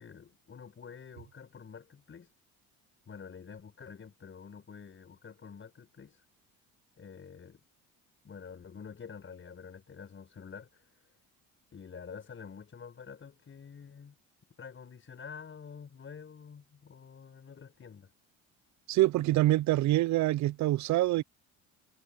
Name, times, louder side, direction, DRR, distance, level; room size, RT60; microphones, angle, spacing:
voice 1, 0.0-2.3 3.1-6.2 7.0-7.6 8.2-11.2 11.7-14.2 14.6-18.1, left 6 dB, 35° left, 5.9 m, -48 dB
voice 2, 18.9-21.2, right 16 dB, 60° right, 0.7 m, -25 dB
supercardioid pair, 75°, 33 cm